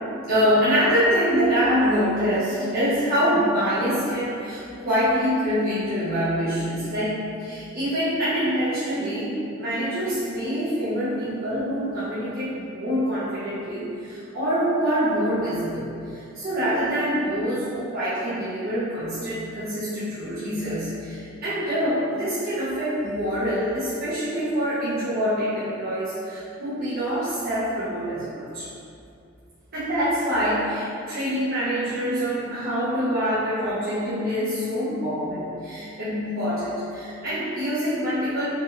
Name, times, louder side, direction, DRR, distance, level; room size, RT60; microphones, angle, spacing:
voice 1, 0.2-28.7 29.7-38.5, equal, 50° right, -14 dB, 1.0 m, -25 dB
4.5 x 2.7 x 3.2 m, 2.6 s
head